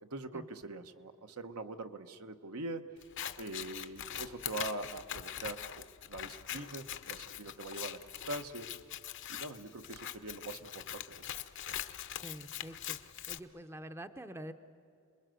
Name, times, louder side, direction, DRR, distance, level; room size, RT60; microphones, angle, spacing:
voice 1, 0.0-2.8 3.4-8.0 8.3-8.7 9.3-11.3, right 2 dB, 75° right, 7 dB, 1.2 m, -43 dB
Scissors, 3.0-13.4, left 10 dB, 55° left, 0.8 m, -43 dB
voice 2, 12.2-14.5, equal, 10° right, 9 dB, 0.6 m, -47 dB
28.0 x 21.0 x 7.8 m, 2.7 s
head